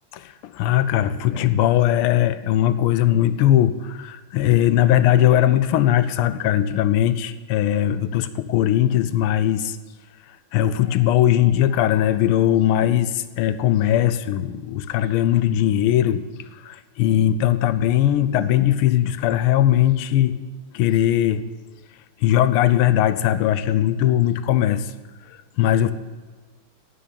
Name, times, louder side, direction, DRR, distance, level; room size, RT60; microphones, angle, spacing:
voice 1, 0.1-9.8 10.5-16.2 16.6-20.4 20.7-21.4 22.2-24.9 25.6-25.9, left 12 dB, 85° left, 13 dB, 1.6 m, -19 dB
12.0 x 7.7 x 8.7 m, 1.3 s
omnidirectional pair, 2.4 m